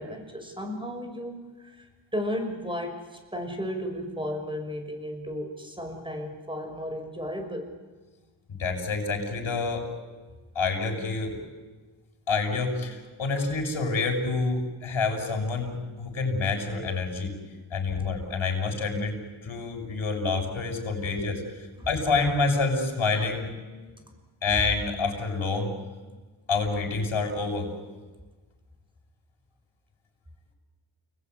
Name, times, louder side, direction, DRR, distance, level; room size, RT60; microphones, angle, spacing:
voice 1, 0.0-7.7 21.8-21.9, equal, 10° right, 5 dB, 6.4 m, -34 dB
voice 2, 8.5-9.9 10.6-11.4 12.3-17.3 17.7-19.2 19.4-21.4 21.9-23.5 24.4-25.7 26.5-27.7, left 4 dB, 75° left, 2 dB, 7.0 m, -27 dB
30.0 x 20.5 x 9.7 m, 1.3 s
cardioid pair, 75°, 47 cm